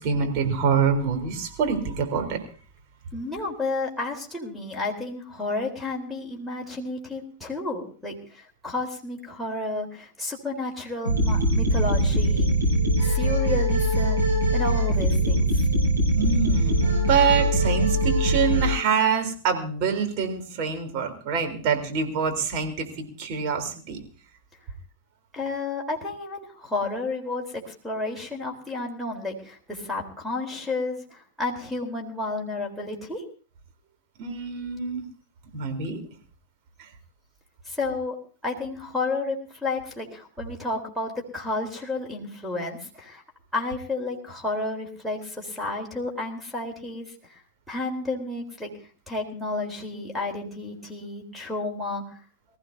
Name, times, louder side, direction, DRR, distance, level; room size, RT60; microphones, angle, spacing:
voice 1, 0.0-2.4 16.2-24.0 34.2-35.0 35.5-36.0 36.8-36.9, right 6 dB, 40° right, 4 dB, 3.7 m, -25 dB
voice 2, 3.1-12.5 13.0-15.5 25.3-33.2 37.7-38.2 38.4-43.2 43.5-47.4 47.7-48.7 49.1-52.2, left 2 dB, ahead, 3 dB, 3.8 m, -31 dB
sound 1, 11.0-18.7, right 1 dB, 90° right, 5.7 m, -22 dB
24.5 x 15.0 x 2.7 m, 0.39 s
figure-of-eight pair, 90°, 0 cm